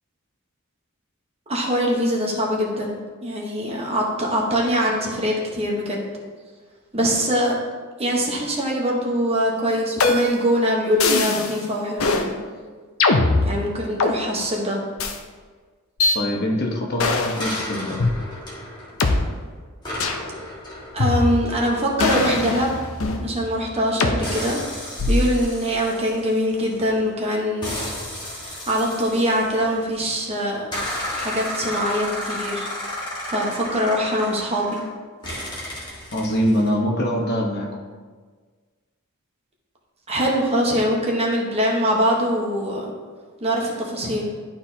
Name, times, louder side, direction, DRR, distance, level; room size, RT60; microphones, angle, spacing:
voice 1, 1.5-6.0 6.9-7.6 8.0-12.4 13.4-14.8 20.9-22.7 23.2-27.8 28.3-30.7 31.1-32.7 33.3-34.8 40.1-42.9 43.4-44.3, equal, 30° right, -2 dB, 1.1 m, -23 dB
sound 1, 10.0-10.5 11.0-11.6 12.0-12.3 13.0-14.2 15.0-15.2 16.0-16.2 17.0-17.4 18.0-18.1 19.0-19.1 20.0-20.3 21.0-21.6 22.0-23.3 24.0-24.2 25.0-25.4, left 3 dB, 70° left, 0.6 m, -21 dB
voice 2, 16.1-18.0 36.1-37.7, equal, 50° left, 0 dB, 1.1 m, -23 dB
sound 2, 17.4-19.4 19.8-23.8 24.2-27.0 27.6-30.1 30.7-34.9 35.2-36.7, left 1 dB, 20° left, 1.5 m, -33 dB
11.5 x 4.3 x 2.8 m, 1.5 s
head